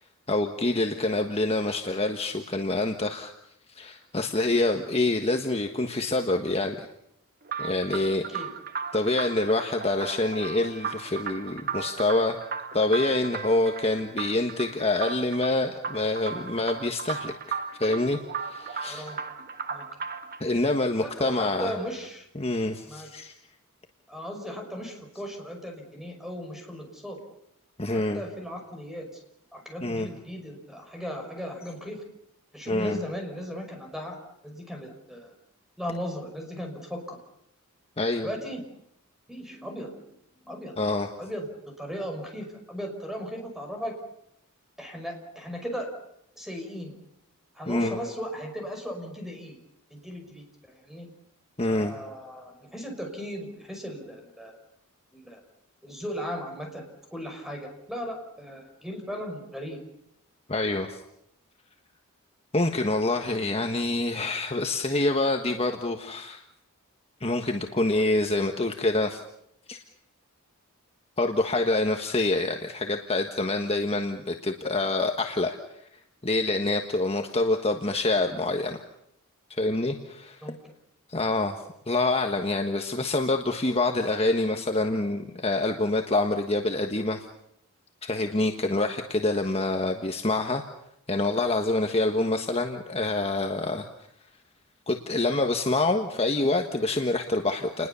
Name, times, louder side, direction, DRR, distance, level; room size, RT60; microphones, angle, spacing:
voice 1, 0.3-3.3 3.7-6.9 7.6-8.4 8.9-12.4 12.7-19.1 20.4-21.7 22.3-23.3 27.8-28.2 29.8-30.1 32.7-33.0 38.0-38.3 40.8-41.1 47.7-48.0 51.6-52.0 60.5-61.0 62.5-66.4 67.2-69.2 69.7-69.8 71.2-75.6 76.2-78.8 79.6-80.4 81.1-87.3 88.0-90.6 91.1-93.8 94.9-97.9, left 2 dB, 25° left, 4 dB, 1.4 m, -26 dB
sound 1, 7.5-20.4, right 6 dB, 40° right, 1.4 m, -36 dB
voice 2, 18.9-19.2 19.7-19.8 21.0-22.2 22.9-23.1 24.1-27.2 27.9-29.2 29.5-32.0 32.5-34.2 34.4-35.3 35.8-37.2 38.2-38.6 39.3-40.0 40.4-40.7 41.2-41.5 41.8-44.0 44.8-45.9 46.4-46.9 47.5-49.6 49.9-50.5 50.8-51.1 51.7-54.6 55.1-55.4 55.8-56.9 57.1-59.8 80.4-80.6, equal, ahead, 3 dB, 5.6 m, -37 dB
30.0 x 21.0 x 7.0 m, 0.77 s
head